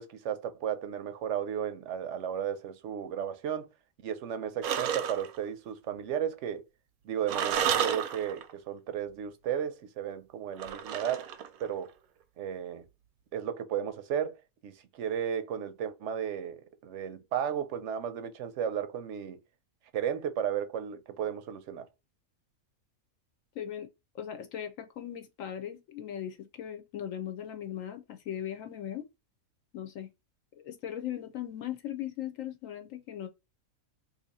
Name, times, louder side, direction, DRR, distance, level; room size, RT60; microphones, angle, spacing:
voice 1, 0.0-3.7 4.0-6.7 7.0-11.3 11.6-12.0 12.4-12.8 13.3-19.4 19.9-21.9, right 9 dB, 65° right, 0.8 m, -34 dB
sound 1, 4.6-5.4 7.3-8.5 10.6-11.7, right 8 dB, 85° right, 1.1 m, -31 dB
voice 2, 23.5-23.9 24.1-29.0 29.7-30.1 30.6-33.3, left 10 dB, 75° left, 1.0 m, -38 dB
2.8 x 2.6 x 4.0 m
omnidirectional pair, 1.5 m